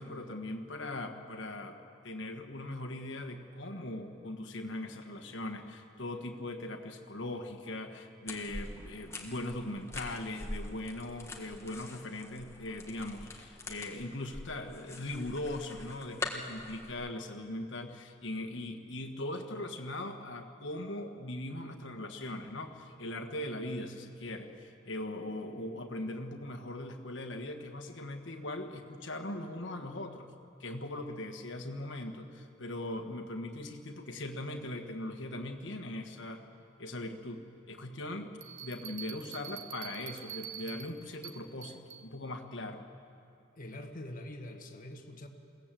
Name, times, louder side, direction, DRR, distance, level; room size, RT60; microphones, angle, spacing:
voice 1, 0.0-1.8 2.0-30.3 30.6-36.4 36.8-42.9, left 1 dB, 60° left, 5 dB, 1.5 m, -40 dB
sound 1, 8.3-16.9, left 2 dB, 15° left, 1.5 m, -44 dB
Bell, 38.4-42.1, right 9 dB, 65° right, 1.0 m, -45 dB
voice 2, 43.6-45.3, left 1 dB, 40° left, 4 dB, 1.5 m, -44 dB
21.5 x 17.5 x 7.6 m, 2.5 s
head